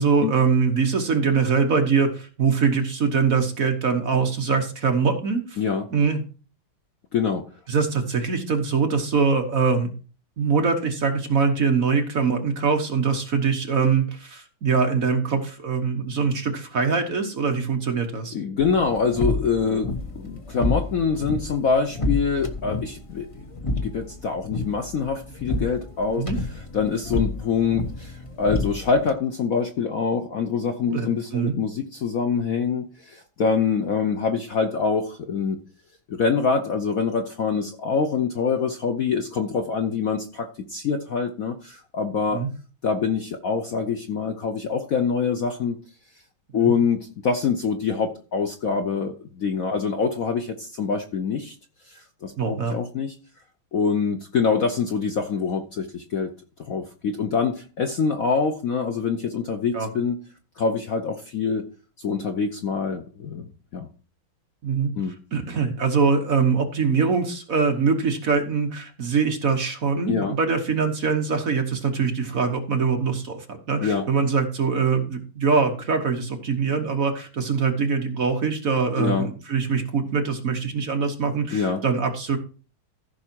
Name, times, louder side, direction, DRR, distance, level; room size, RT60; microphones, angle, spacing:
voice 1, 0.0-5.6 5.9-6.2 7.7-9.9 10.4-18.3 26.2-26.4 30.9-31.5 42.3-42.5 46.5-46.7 52.4-52.8 59.7-59.9 64.6-64.9 65.3-82.4, right 5 dB, 45° right, 5 dB, 1.4 m, -23 dB
voice 2, 5.6-5.9 7.1-7.4 18.3-19.9 20.2-23.3 23.6-26.2 26.7-35.6 36.1-42.4 42.8-45.8 46.5-51.5 51.9-53.2 53.7-56.3 56.6-60.2 60.6-61.6 62.0-63.9 65.0-65.1 70.1-70.3 73.8-74.1 79.0-79.3 81.5-81.8, left 5 dB, 55° left, 6 dB, 1.0 m, -25 dB
sound 1, 18.6-29.2, left 2 dB, 25° left, 0.7 m, -30 dB
14.5 x 5.6 x 4.5 m, 0.36 s
omnidirectional pair, 2.2 m